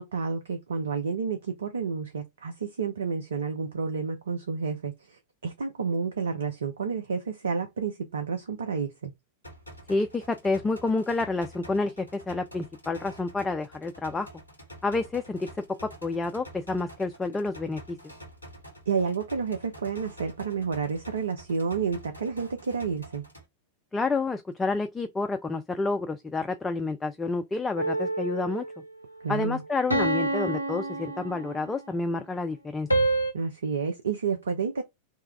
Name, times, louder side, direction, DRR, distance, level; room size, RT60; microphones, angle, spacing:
voice 1, 0.0-9.1 18.9-23.2 29.2-29.6 33.3-34.8, right 5 dB, 70° right, 0.5 m, -30 dB
sound 1, 9.4-23.4, equal, 90° right, 1.7 m, -48 dB
voice 2, 9.9-14.3 14.8-15.5 16.0-18.0 23.9-28.6 29.3-32.9, left 3 dB, 10° left, 0.4 m, -29 dB
sound 2, 27.8-28.8 29.9-31.8 32.9-33.3, right 2 dB, 85° left, 0.5 m, -27 dB
3.0 x 2.3 x 3.3 m
figure-of-eight pair, 90°, 0 cm